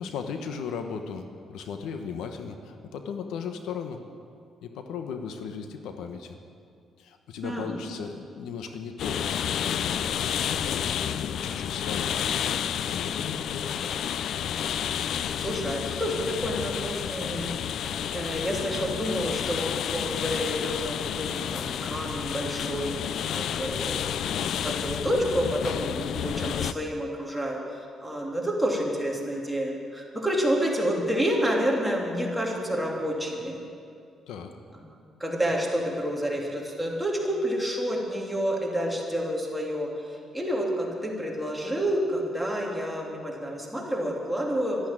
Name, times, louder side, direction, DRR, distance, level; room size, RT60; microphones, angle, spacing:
voice 1, 0.0-4.0 4.6-6.4 7.0-12.2 12.9-14.0 34.3-34.6, left 6 dB, 90° left, 6 dB, 1.0 m, -37 dB
voice 2, 7.4-7.7 15.4-17.6 18.1-33.6 34.9-44.8, equal, 5° right, -2 dB, 3.2 m, -29 dB
sound 1, 9.0-26.7, left 9 dB, 75° left, 0.5 m, -30 dB
13.0 x 11.0 x 8.8 m, 2.4 s
cardioid pair, 85°, 0 cm